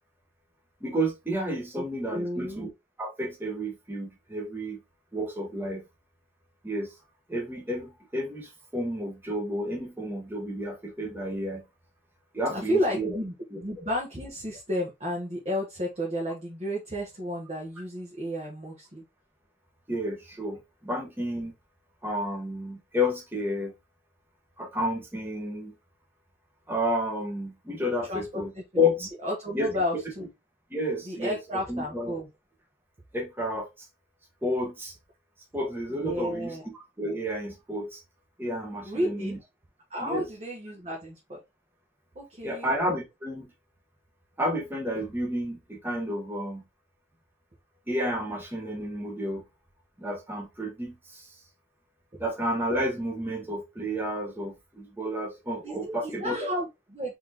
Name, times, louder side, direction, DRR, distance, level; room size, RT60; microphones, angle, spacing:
voice 1, 0.8-2.7 3.0-4.8 5.1-5.8 6.6-6.9 7.3-11.6 12.3-13.2 13.5-13.6 19.9-21.5 22.0-23.7 24.6-25.7 26.7-29.1 29.5-29.7 30.7-31.4 31.7-32.2 33.1-33.7 34.4-34.9 35.5-36.6 37.0-38.0 38.4-39.4 40.0-40.3 42.4-43.5 44.4-46.6 47.9-49.4 50.0-51.3 52.2-56.5, equal, 10° right, 1.2 m, -31 dB
voice 2, 2.1-2.6 12.5-19.0 28.1-28.4 28.7-28.8 29.2-30.3 31.1-32.3 36.0-36.6 38.8-39.4 39.9-41.4 42.1-42.7 55.6-57.2, equal, 35° right, 1.2 m, -32 dB
4.3 x 3.7 x 2.9 m
head